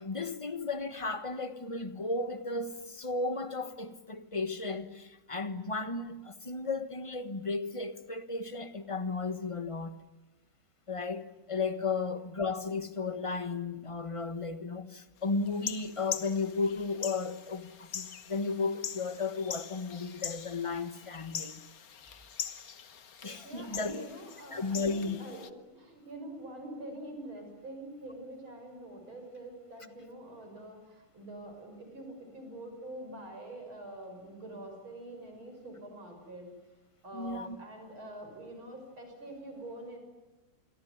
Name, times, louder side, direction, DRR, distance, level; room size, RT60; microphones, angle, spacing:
voice 1, 0.0-10.0 10.9-21.6 23.2-24.1 24.5-25.2 37.1-37.6, left 3 dB, 20° left, 1.0 m, -34 dB
sound 1, 15.5-25.5, left 7 dB, 50° left, 1.5 m, -42 dB
voice 2, 23.4-36.5 37.0-40.0, right 1 dB, 70° right, 7.2 m, -45 dB
28.0 x 22.5 x 9.5 m
omnidirectional pair, 2.3 m